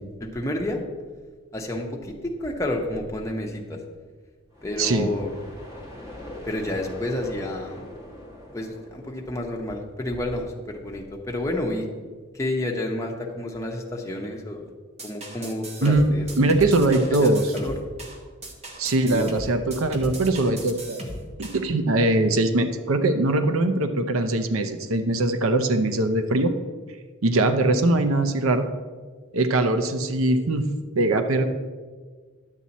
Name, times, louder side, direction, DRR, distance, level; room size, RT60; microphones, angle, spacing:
voice 1, 0.2-0.8 1.5-3.8 4.6-5.3 6.4-7.8 8.5-11.9 12.3-14.7 15.0-16.3 16.6-17.8 19.1-19.3, left 1 dB, 15° left, 0 dB, 1.0 m, -30 dB
sound 1, 4.5-10.3, left 1 dB, 15° right, 1.4 m, -42 dB
voice 2, 4.8-5.1 15.8-17.4 18.8-21.0 21.4-26.5 27.2-28.6 29.3-30.7 31.0-31.4, right 2 dB, 85° right, 8 dB, 0.7 m, -21 dB
sound 2, 15.0-21.6, right 1 dB, 30° right, 1.1 m, -37 dB
10.5 x 7.4 x 4.2 m, 1.5 s
head